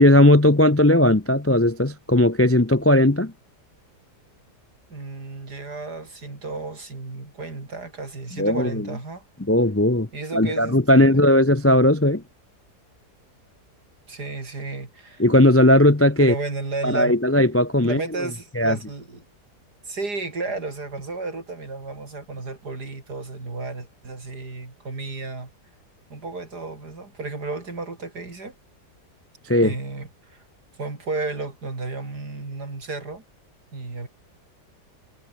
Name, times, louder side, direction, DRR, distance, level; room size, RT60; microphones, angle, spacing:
voice 1, 0.0-3.3 8.4-8.9 9.5-12.2 15.2-16.3 16.8-18.0 18.6-18.8 29.5-29.7, left 1 dB, 15° left, 0.4 m, -17 dB
voice 2, 4.9-9.2 10.1-11.2 14.1-15.2 16.2-17.2 17.8-19.2 19.8-25.5 26.1-28.5 29.6-30.4 30.8-33.2 33.7-34.1, right 3 dB, 70° right, 5.0 m, -33 dB
omnidirectional pair, 1.8 m